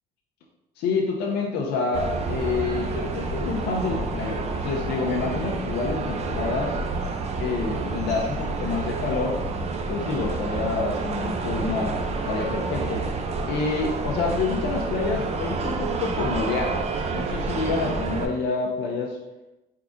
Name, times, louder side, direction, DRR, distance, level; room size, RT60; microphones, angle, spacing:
voice 1, 0.8-6.8 7.4-9.4 9.9-13.1 13.5-16.8 17.1-19.2, left 4 dB, 80° left, -1 dB, 0.6 m, -28 dB
sound 1, 1.9-18.3, right 3 dB, 40° right, 0.5 m, -29 dB
4.6 x 3.6 x 2.6 m, 0.98 s
cardioid pair, 110°, 17 cm